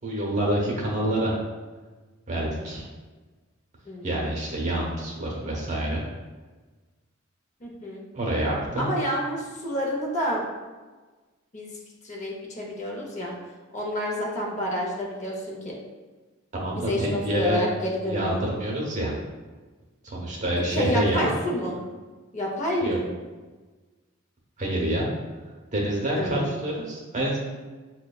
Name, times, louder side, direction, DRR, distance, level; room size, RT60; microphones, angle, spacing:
voice 1, 0.0-1.3 2.3-2.8 4.0-6.0 8.1-8.9 16.5-17.6 18.0-19.1 20.0-21.3 22.8-23.0 24.6-25.1 25.7-27.4, right 1 dB, 40° right, -2 dB, 0.8 m, -27 dB
voice 2, 3.9-4.2 7.6-8.0 8.7-10.4 11.5-11.7 12.0-13.3 13.7-15.8 16.8-18.5 20.7-21.8 22.3-23.0 26.1-26.6, equal, 35° left, -2 dB, 0.6 m, -29 dB
6.0 x 2.2 x 2.3 m, 1.3 s
head